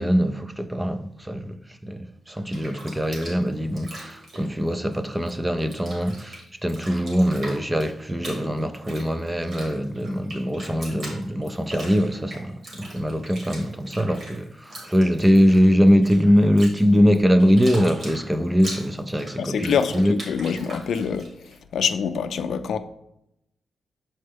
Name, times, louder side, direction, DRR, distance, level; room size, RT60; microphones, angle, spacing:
voice 1, 0.0-20.2, equal, 10° right, 0.3 m, -22 dB
Bathtub (filling or washing), 2.3-5.3 5.6-21.6, right 1 dB, 50° right, 1.9 m, -41 dB
voice 2, 19.4-21.3 21.7-22.8, left 7 dB, 75° left, 0.4 m, -25 dB
6.5 x 4.4 x 3.4 m
wide cardioid pair, 135°, 0 cm